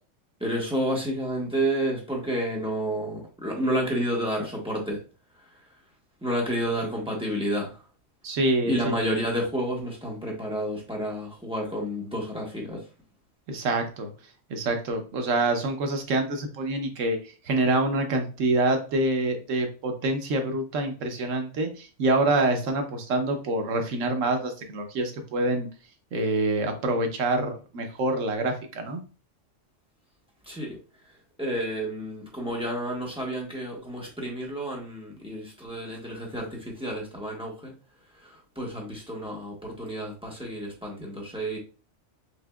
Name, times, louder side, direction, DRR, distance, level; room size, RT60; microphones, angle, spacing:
voice 1, 0.4-5.0 6.2-7.7 8.6-12.8 30.5-30.8 31.4-37.7 38.2-41.6, right 1 dB, 5° right, -3 dB, 1.2 m, -30 dB
voice 2, 8.2-9.0 13.5-14.1 14.5-25.7 26.1-29.0, right 2 dB, 85° right, 5 dB, 1.2 m, -26 dB
5.9 x 2.8 x 2.3 m, 0.35 s
omnidirectional pair, 1.3 m